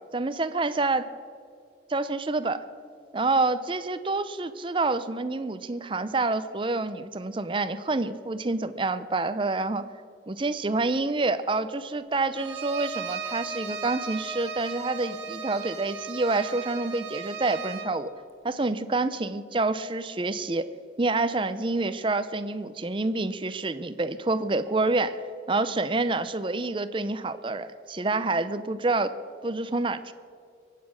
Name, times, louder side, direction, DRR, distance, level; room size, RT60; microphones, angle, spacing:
voice 1, 0.1-1.0 1.9-2.6 3.1-9.8 10.3-18.1 18.4-20.7 21.0-25.2 25.5-29.1 29.4-30.1, right 3 dB, 30° right, 13 dB, 0.6 m, -27 dB
Bowed string instrument, 12.4-18.0, right 4 dB, 85° right, 1.7 m, -36 dB
22.5 x 8.5 x 6.2 m, 2.3 s
head